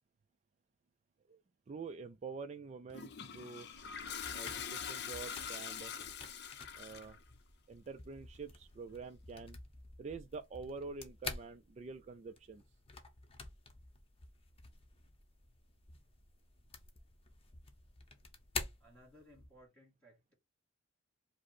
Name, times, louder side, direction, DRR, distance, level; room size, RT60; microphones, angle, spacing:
voice 1, 1.7-3.7 4.3-5.9 6.7-7.2 7.7-9.6 10.0-12.6, right 4 dB, 35° right, 0.3 m, -47 dB
Toilet flush, 2.9-7.2, left 7 dB, 55° left, 0.6 m, -44 dB
sound 1, 3.6-19.6, left 4 dB, 30° left, 0.8 m, -50 dB
voice 2, 18.8-20.3, equal, 10° left, 2.3 m, -61 dB
5.0 x 2.0 x 4.2 m
head